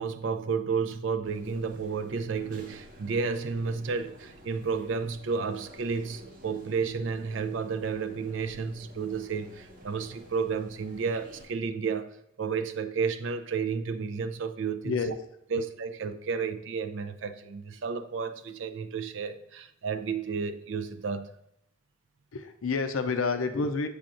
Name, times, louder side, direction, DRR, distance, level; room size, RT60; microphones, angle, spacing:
voice 1, 0.0-15.0 15.5-21.3, right 5 dB, 65° right, 8 dB, 0.5 m, -32 dB
sound 1, 1.2-11.5, equal, 40° right, 1.0 m, -51 dB
voice 2, 22.3-23.9, left 4 dB, 80° left, 8 dB, 0.5 m, -28 dB
7.0 x 5.8 x 2.5 m, 0.78 s
head